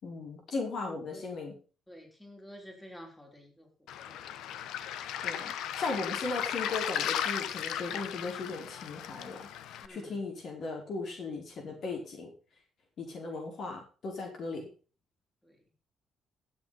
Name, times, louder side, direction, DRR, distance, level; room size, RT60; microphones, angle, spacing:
voice 1, 0.0-1.5 5.2-12.3 13.0-14.7, left 3 dB, 60° left, 1 dB, 5.0 m, -37 dB
voice 2, 0.8-1.3 1.9-4.3 9.8-10.2 13.2-13.4 15.4-15.6, equal, 10° left, 0 dB, 5.4 m, -51 dB
Waves surf, 3.9-9.9, left 10 dB, 85° left, 1.0 m, -36 dB
15.5 x 7.2 x 5.9 m, 0.37 s
cardioid pair, 90°, 0 cm